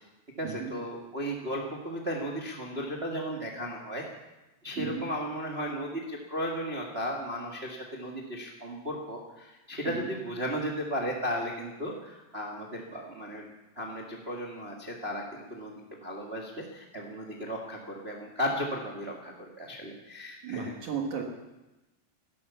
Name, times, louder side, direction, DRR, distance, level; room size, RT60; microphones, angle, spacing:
voice 1, 0.4-4.0 4.6-13.5 13.7-20.7, equal, 80° right, -1 dB, 0.5 m, -35 dB
voice 2, 4.8-5.1 9.8-10.1 20.4-21.2, right 6 dB, 55° right, 2 dB, 2.5 m, -34 dB
17.0 x 12.0 x 7.1 m, 1.0 s
omnidirectional pair, 4.9 m